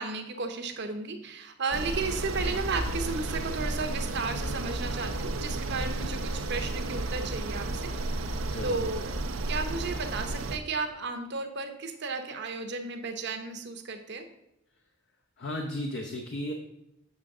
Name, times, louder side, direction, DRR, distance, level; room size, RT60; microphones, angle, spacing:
voice 1, 0.0-7.9 8.4-9.2 9.5-14.2, right 4 dB, 60° right, 6 dB, 0.9 m, -34 dB
sound 1, 1.7-10.6, right 2 dB, 80° right, 0.6 m, -32 dB
voice 2, 8.5-8.8 15.4-16.5, left 1 dB, 60° left, 2 dB, 0.8 m, -35 dB
7.4 x 6.2 x 3.7 m, 0.82 s
head